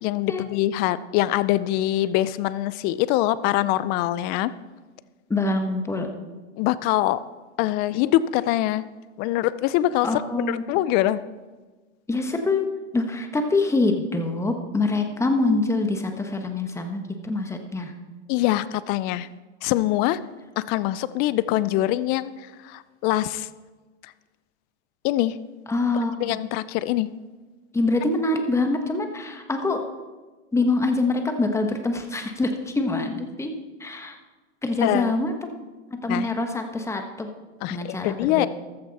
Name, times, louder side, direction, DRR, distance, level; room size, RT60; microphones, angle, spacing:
voice 1, 0.0-4.5 6.6-7.2 7.6-8.8 9.2-10.1 10.3-11.2 18.3-19.3 19.6-20.2 20.6-22.3 22.6-23.5 24.0-24.1 25.0-25.4 25.9-27.1 34.8-35.2 36.1-36.3 37.6-38.5, left 15 dB, 25° left, 17 dB, 0.4 m, -24 dB
voice 2, 5.3-6.1 10.0-10.6 12.1-17.9 25.7-26.4 27.7-29.8 30.5-33.5 33.8-34.2 34.6-35.5 36.0-37.3 37.7-38.5, left 2 dB, 10° left, 5 dB, 1.3 m, -25 dB
14.5 x 13.0 x 4.1 m, 1.3 s
hypercardioid pair, 135°, 36 cm